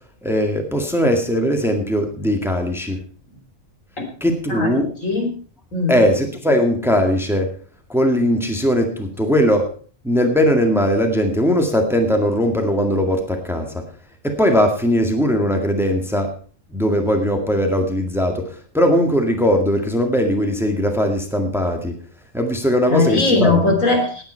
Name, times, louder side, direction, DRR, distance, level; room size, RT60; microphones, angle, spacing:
voice 1, 0.2-3.0 4.2-4.9 5.9-7.6 7.9-9.7 10.0-13.8 14.2-16.3 16.7-22.0 22.3-23.5, equal, ahead, 4 dB, 1.9 m, -19 dB
voice 2, 4.5-5.3 5.7-6.0 22.9-24.2, left 3 dB, 80° left, 2 dB, 3.6 m, -19 dB
18.0 x 9.2 x 4.5 m, 0.40 s
omnidirectional pair, 1.4 m